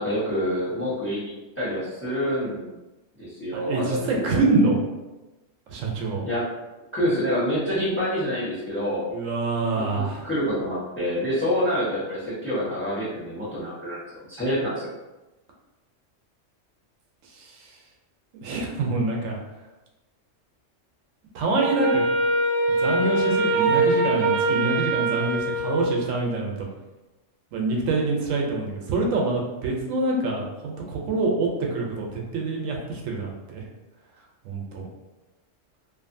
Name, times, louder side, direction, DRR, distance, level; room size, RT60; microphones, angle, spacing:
voice 1, 0.0-2.7 3.2-4.5 6.2-6.5 6.9-9.1 9.7-14.0 14.3-14.9, equal, 10° left, -9 dB, 0.9 m, -27 dB
voice 2, 3.5-4.8 5.7-6.2 9.1-10.2 17.3-17.8 18.4-19.4 21.3-22.0 22.8-26.7 27.5-33.6 34.4-34.8, right 3 dB, 80° right, -1 dB, 1.0 m, -26 dB
Wind instrument woodwind instrument, 21.6-26.2, right 2 dB, 60° right, 0.8 m, -23 dB
2.5 x 2.5 x 2.5 m, 1.1 s
omnidirectional pair, 1.3 m